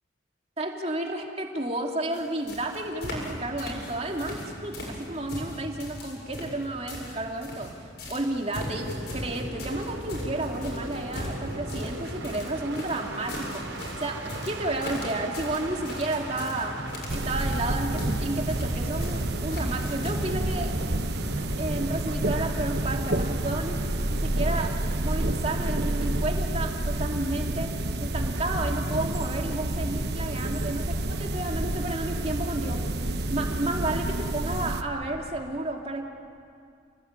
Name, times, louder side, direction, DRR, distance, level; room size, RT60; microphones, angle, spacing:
voice 1, 0.6-7.7 8.1-16.8 17.1-20.9 21.6-23.8 24.1-24.7 25.0-27.7 28.0-32.8 33.3-36.0, right 2 dB, 35° right, 1 dB, 2.7 m, -32 dB
sound 1, 2.1-2.2 2.5-3.3 3.6-4.5 4.7-7.7 8.0-20.1, left 1 dB, 60° left, 7.7 m, -37 dB
sound 2, 8.8-26.2, right 1 dB, 80° right, 4.1 m, -38 dB
sound 3, 17.1-34.8, right 1 dB, 60° right, 1.2 m, -29 dB
29.5 x 19.0 x 9.7 m, 2.2 s
head